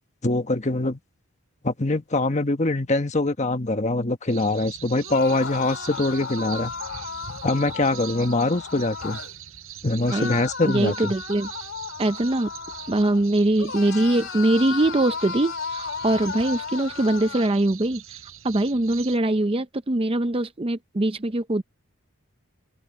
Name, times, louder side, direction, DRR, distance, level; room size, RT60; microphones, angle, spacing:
voice 1, 0.2-1.0 1.6-6.7 7.4-9.2 9.8-11.1, left 2 dB, 30° left, 1.3 m, -23 dB
sound 1, 4.3-19.2, right 10 dB, 70° right, 7.5 m, -42 dB
sound 2, 5.0-9.3 10.1-13.2 13.6-17.5, left 6 dB, 55° left, 3.1 m, -35 dB
voice 2, 10.6-11.5 12.0-12.5 12.9-21.6, right 1 dB, 25° right, 0.6 m, -22 dB
open air
head